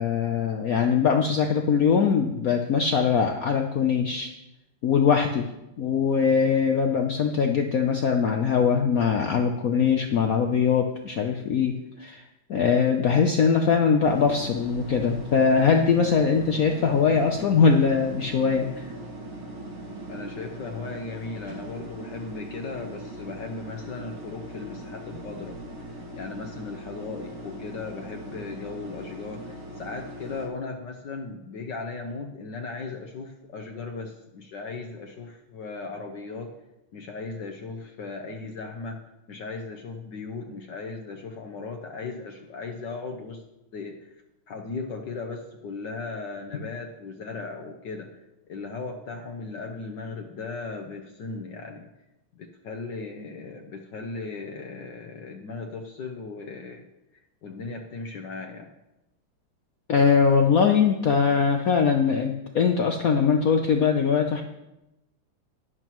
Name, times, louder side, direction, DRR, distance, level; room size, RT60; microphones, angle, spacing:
voice 1, 0.0-4.3 4.8-5.5 5.8-12.2 12.5-18.9 59.9-64.4, left 6 dB, 85° left, 4 dB, 0.7 m, -22 dB
sound 1, 14.0-30.5, right 1 dB, 70° right, 2.7 m, -40 dB
voice 2, 20.1-25.6 25.9-36.5 36.9-39.0 39.3-43.4 43.7-44.2 44.5-51.9 52.3-56.8 57.1-58.7, left 4 dB, 65° left, 3 dB, 1.3 m, -37 dB
12.5 x 10.5 x 3.0 m, 0.93 s
omnidirectional pair, 2.4 m